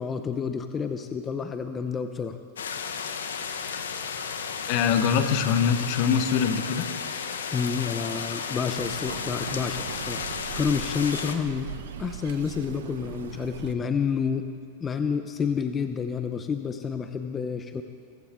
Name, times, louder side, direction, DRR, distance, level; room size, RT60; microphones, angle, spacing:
voice 1, 0.0-2.4 7.5-10.3 10.6-14.4 14.8-17.8, left 6 dB, 25° left, 8 dB, 0.7 m, -29 dB
sound 1, 2.6-11.3, left 6 dB, 85° left, 1.2 m, -33 dB
voice 2, 4.7-6.9, left 7 dB, 55° left, 9 dB, 1.2 m, -23 dB
sound 2, 8.7-13.7, right 9 dB, 75° right, 0.8 m, -39 dB
22.0 x 14.5 x 3.8 m, 2.1 s
hypercardioid pair, 110°, 0 cm